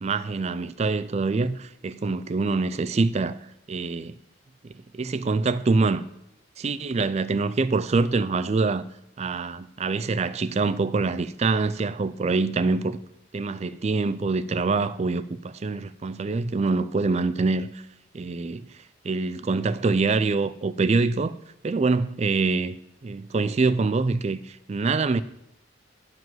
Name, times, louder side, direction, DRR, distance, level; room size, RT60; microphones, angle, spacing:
voice 1, 0.0-3.4 3.7-4.1 4.9-6.0 6.6-8.8 9.2-13.0 13.3-17.8 18.1-18.7 19.0-21.4 21.6-22.8 23.0-25.2, right 3 dB, 35° right, 0.4 m, -25 dB
9.3 x 4.8 x 7.8 m
head